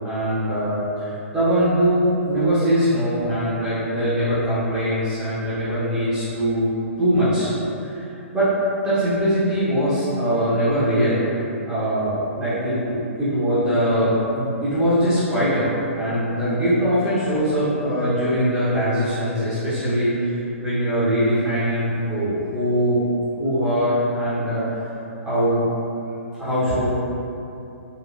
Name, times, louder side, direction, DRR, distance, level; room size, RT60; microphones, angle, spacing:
voice 1, 0.0-6.7 7.0-7.5 7.8-8.1 8.3-8.5 8.8-11.2 11.6-15.7 15.9-23.0 23.4-24.9 25.2-25.6 26.4-26.9, equal, 10° right, -15 dB, 1.1 m, -22 dB
4.0 x 2.9 x 2.6 m, 2.9 s
figure-of-eight pair, 120°, 7 cm